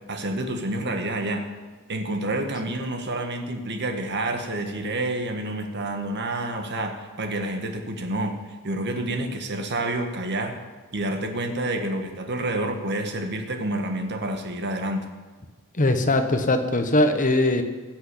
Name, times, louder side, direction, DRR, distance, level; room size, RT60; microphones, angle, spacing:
voice 1, 0.1-1.5 1.9-8.4 8.6-10.6 10.9-15.1, right 1 dB, 50° right, 5 dB, 1.5 m, -28 dB
voice 2, 15.8-17.6, left 2 dB, 35° left, 7 dB, 1.1 m, -21 dB
16.5 x 6.2 x 8.2 m, 1.3 s
head